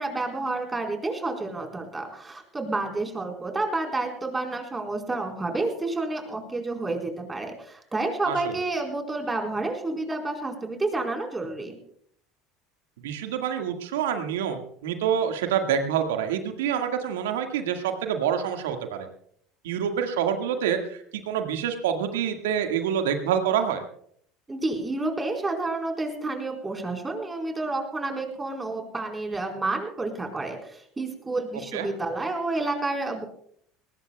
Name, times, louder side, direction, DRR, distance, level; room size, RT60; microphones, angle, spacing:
voice 1, 0.0-11.8 24.5-33.3, right 2 dB, 15° right, 3 dB, 4.5 m, -30 dB
voice 2, 8.2-8.6 13.0-19.1 19.6-23.8 31.7-31.9, right 8 dB, 75° right, 5 dB, 1.9 m, -27 dB
21.5 x 19.0 x 2.3 m, 0.64 s
hypercardioid pair, 70°, 0 cm